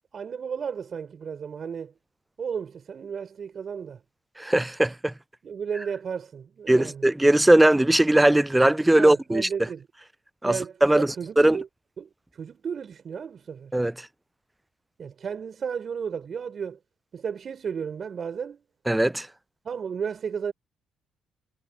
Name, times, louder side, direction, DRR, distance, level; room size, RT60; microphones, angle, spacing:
voice 1, 0.1-1.9 2.4-4.0 5.4-7.1 9.0-9.9 10.4-11.7 12.0-13.7 15.0-16.8 17.1-18.6 19.6-20.5, right 7 dB, 50° right, 6.2 m, -33 dB
voice 2, 4.4-5.1 6.7-9.5 10.4-11.1 11.4-11.6 13.7-13.9 18.9-19.3, right 1 dB, 10° right, 0.3 m, -19 dB
cardioid pair, 90°, 0 cm